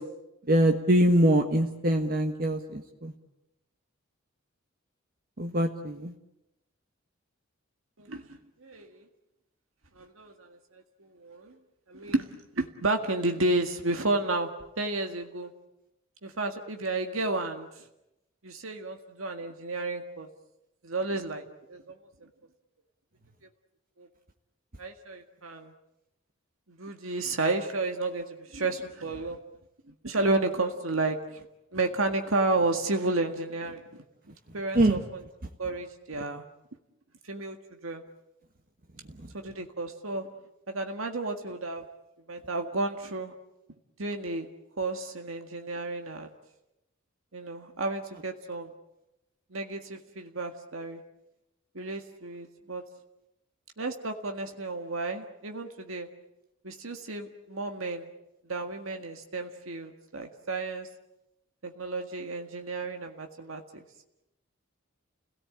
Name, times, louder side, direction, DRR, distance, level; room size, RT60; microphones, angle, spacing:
voice 1, 0.5-3.1 5.4-6.1 34.7-35.0, right 1 dB, 45° right, 4 dB, 1.5 m, -23 dB
voice 2, 8.0-9.1 10.0-11.6 11.9-14.5 14.8-15.5 16.2-17.7 18.4-20.3 20.8-21.4 21.7-22.3 24.0-24.1 24.8-25.7 26.7-29.4 30.0-31.4 31.7-34.0 34.5-35.2 35.6-36.4 37.2-37.6 37.8-38.0 39.3-40.3 40.7-41.8 42.3-43.3 44.0-44.5 44.8-46.3 47.3-48.7 49.5-51.0 51.8-52.8 53.8-56.1 56.6-58.1 58.5-60.9 61.6-63.8, right 2 dB, 85° right, 5 dB, 1.9 m, -32 dB
29.5 x 18.0 x 8.8 m, 0.92 s
head